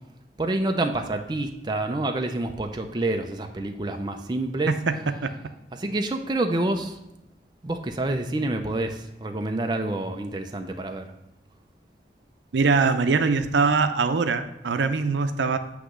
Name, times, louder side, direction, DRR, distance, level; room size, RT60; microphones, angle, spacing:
voice 1, 0.4-4.8 5.7-7.0 7.6-11.1, right 2 dB, 25° right, 4 dB, 0.4 m, -28 dB
voice 2, 4.7-5.3 12.5-15.6, right 4 dB, 90° right, 9 dB, 0.5 m, -22 dB
8.1 x 3.0 x 6.2 m, 0.84 s
head